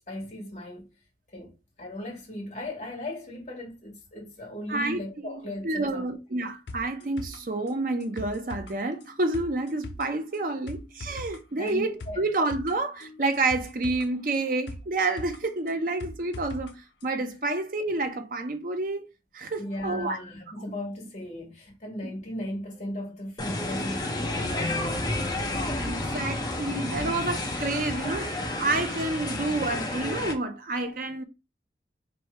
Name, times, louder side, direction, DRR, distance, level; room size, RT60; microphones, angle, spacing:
voice 1, 0.1-0.9 1.3-1.5 1.8-6.0 11.6-12.2 19.6-25.6, left 1 dB, 40° left, 1.6 m, -37 dB
voice 2, 4.7-5.0 5.3-19.1 19.3-20.2 22.0-22.1 25.9-31.2, right 2 dB, 50° right, 0.6 m, -29 dB
sound 1, 6.7-16.7 17.0-17.1, left 2 dB, 85° left, 0.5 m, -42 dB
sound 2, 23.4-30.3, left 2 dB, 25° left, 0.7 m, -30 dB
3.2 x 2.7 x 4.3 m
head